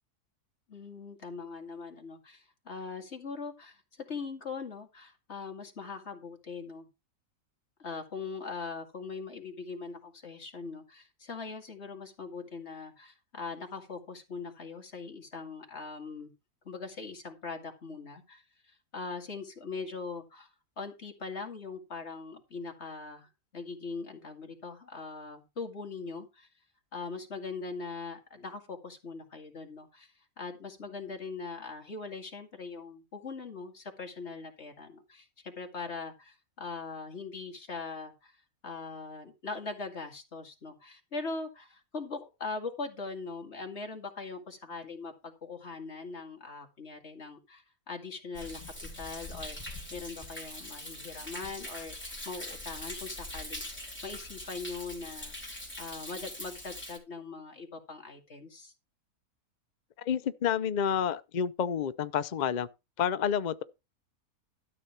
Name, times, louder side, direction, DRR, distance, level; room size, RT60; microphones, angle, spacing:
voice 1, 0.7-6.9 7.8-16.3 16.6-26.5 26.9-48.6 49.0-58.7, left 4 dB, 45° left, 2.5 m, -41 dB
Thunder, 48.3-57.0, left 1 dB, 5° left, 3.7 m, -42 dB
voice 2, 60.0-62.7 63.0-63.6, left 8 dB, 70° left, 0.4 m, -29 dB
12.5 x 6.9 x 4.5 m
omnidirectional pair, 1.6 m